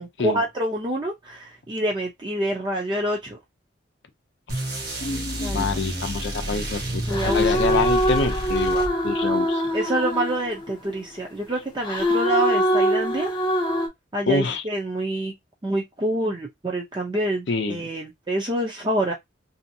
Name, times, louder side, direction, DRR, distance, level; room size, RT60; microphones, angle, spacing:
voice 1, 0.0-3.4 5.4-5.7 7.1-7.8 9.7-13.3 14.1-15.3 15.6-19.1, right 1 dB, 25° right, 0.6 m, -27 dB
sound 1, 4.5-9.3, equal, 55° right, 1.1 m, -30 dB
sound 2, 5.0-6.5 7.1-10.9 11.8-13.9, equal, 25° left, 0.7 m, -24 dB
voice 2, 5.5-9.8 14.3-14.6 17.5-17.8, left 4 dB, 65° left, 0.5 m, -26 dB
2.7 x 2.5 x 2.6 m
head